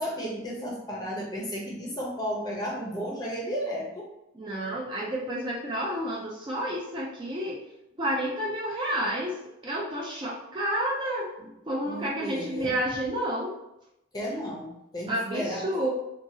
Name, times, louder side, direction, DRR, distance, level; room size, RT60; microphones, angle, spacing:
voice 1, 0.0-4.1 11.4-11.5 11.8-12.8 14.1-15.7, equal, 20° left, -3 dB, 0.6 m, -33 dB
voice 2, 4.3-7.6 8.0-9.4 9.6-11.3 11.6-13.5 15.1-15.9, right 1 dB, 25° right, -4 dB, 0.3 m, -30 dB
2.7 x 2.3 x 2.6 m, 0.86 s
head